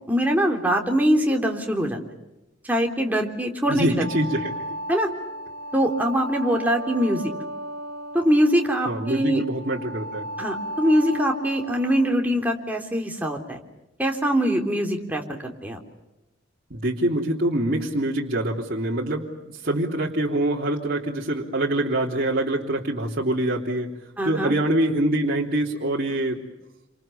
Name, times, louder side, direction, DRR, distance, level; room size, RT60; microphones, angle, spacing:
voice 1, 0.1-2.0 2.6-4.1 4.9-5.1 5.7-7.2 8.1-9.4 10.4-13.6 14.0-15.8 24.2-24.5, equal, 10° right, 2 dB, 3.7 m, -23 dB
voice 2, 3.7-4.7 8.9-10.3 16.7-23.9 24.2-26.4, right 1 dB, 50° right, -4 dB, 3.3 m, -25 dB
sound 1, 4.0-12.1, right 1 dB, 85° right, 1.3 m, -35 dB
29.0 x 27.0 x 6.9 m, 0.95 s
head